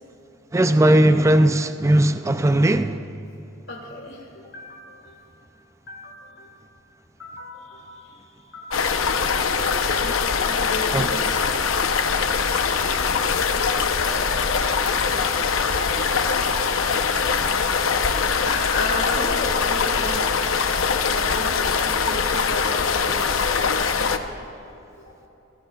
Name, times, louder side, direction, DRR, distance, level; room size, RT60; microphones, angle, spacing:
voice 1, 0.5-3.0 10.9-11.1, right 1 dB, 15° right, 0.4 m, -18 dB
voice 2, 3.7-4.3 4.5-5.3 5.9-6.7 7.2-9.5 9.7-11.4 18.4-24.5, left 2 dB, 60° left, 1.8 m, -34 dB
sound 1, 8.7-24.2, left 5 dB, 80° left, 0.8 m, -22 dB
27.5 x 18.0 x 2.4 m
head